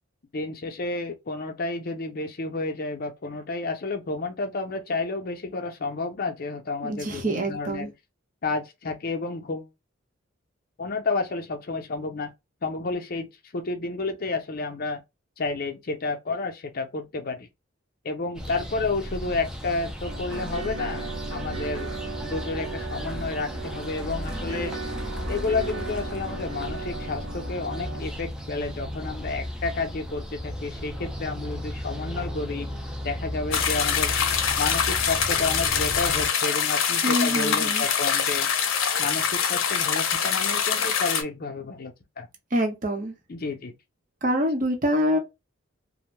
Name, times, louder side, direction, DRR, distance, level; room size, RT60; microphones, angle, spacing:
voice 1, 0.3-7.9 8.4-9.7 10.8-12.3 12.6-13.3 13.5-15.0 15.4-17.5 18.0-21.9 22.2-24.8 25.3-32.7 33.0-34.1 34.6-38.5 39.0-42.3 43.3-43.7, left 3 dB, 50° left, 0.6 m, -31 dB
voice 2, 6.8-7.9 37.0-37.9 42.5-43.1 44.2-45.2, equal, 45° right, 0.8 m, -25 dB
sound 1, 18.3-36.3, equal, 5° right, 0.4 m, -35 dB
sound 2, 20.0-28.0, right 4 dB, 70° right, 0.8 m, -37 dB
sound 3, 33.5-41.2, left 7 dB, 90° left, 0.6 m, -24 dB
2.6 x 2.1 x 3.1 m
head